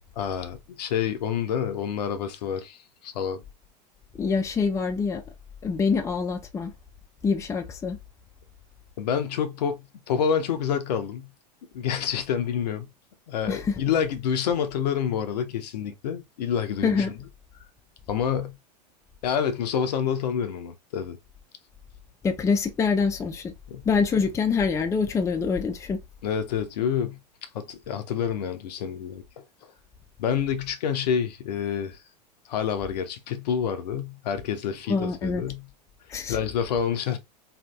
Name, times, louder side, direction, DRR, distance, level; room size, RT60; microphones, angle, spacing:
voice 1, 0.2-3.4 9.0-11.3 11.7-12.9 13.3-17.2 18.1-18.6 19.2-21.2 23.7-23.8 26.2-29.4 30.2-32.0 32.5-35.7 36.3-37.2, left 8 dB, 70° left, 0.6 m, -28 dB
voice 2, 4.2-5.2 5.6-6.7 7.2-8.0 13.5-13.7 16.8-17.1 22.2-23.5 23.9-26.0 34.9-35.4 36.1-36.4, left 5 dB, 15° left, 0.4 m, -25 dB
2.8 x 2.6 x 2.3 m
hypercardioid pair, 95°, 21 cm